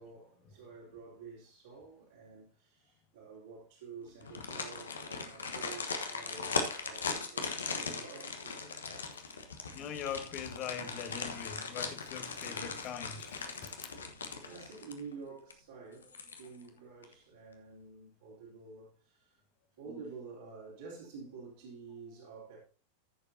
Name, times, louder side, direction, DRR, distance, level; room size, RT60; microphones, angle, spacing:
voice 1, 0.0-8.7 13.1-19.4 19.8-22.6, right 5 dB, 60° right, 3.1 m, -50 dB
sound 1, 4.2-15.1 15.5-15.6 16.0-16.7 17.0-17.1, left 4 dB, 70° left, 1.2 m, -39 dB
voice 2, 9.7-13.9, left 8 dB, 35° left, 1.2 m, -42 dB
14.5 x 6.9 x 2.8 m
figure-of-eight pair, 90°, 0 cm